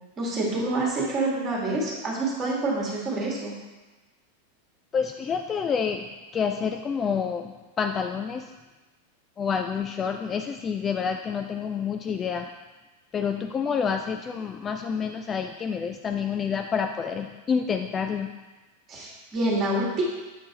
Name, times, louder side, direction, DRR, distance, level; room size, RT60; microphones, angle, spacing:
voice 1, 0.2-3.5 18.9-20.0, right 2 dB, 25° right, -4 dB, 2.2 m, -27 dB
voice 2, 4.9-6.1 6.3-8.5 9.4-12.5 13.1-18.3, left 6 dB, 20° left, 5 dB, 0.3 m, -28 dB
7.6 x 4.5 x 4.1 m, 1.2 s
figure-of-eight pair, 90°, 0 cm